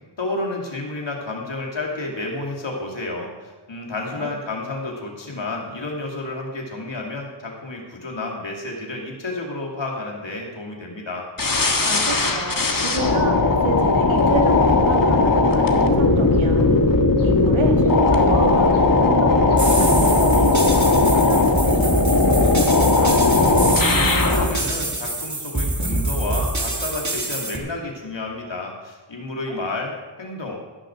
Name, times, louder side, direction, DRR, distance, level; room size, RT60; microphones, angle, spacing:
voice 1, 0.2-11.3 23.9-30.6, left 2 dB, 70° left, -1 dB, 2.8 m, -30 dB
sound 1, 11.4-24.5, left 3 dB, 45° left, 1.5 m, -17 dB
voice 2, 11.9-16.7 17.2-23.3 29.5-29.6, right 3 dB, 85° right, 2 dB, 1.9 m, -30 dB
sound 2, 19.6-27.6, right 2 dB, 40° right, 2.1 m, -25 dB
16.0 x 6.7 x 6.1 m, 1.2 s
wide cardioid pair, 50°, 46 cm